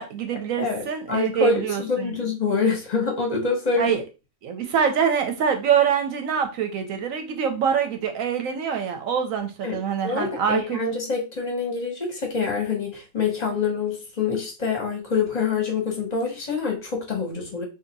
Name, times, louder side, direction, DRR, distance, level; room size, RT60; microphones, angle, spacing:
voice 1, 0.0-2.1 3.8-4.0 4.4-10.8, right 7 dB, 65° right, 0.9 m, -25 dB
voice 2, 1.1-4.0 9.6-9.8 10.0-17.6, left 5 dB, 35° left, 0.8 m, -26 dB
2.8 x 2.4 x 3.9 m
omnidirectional pair, 1.7 m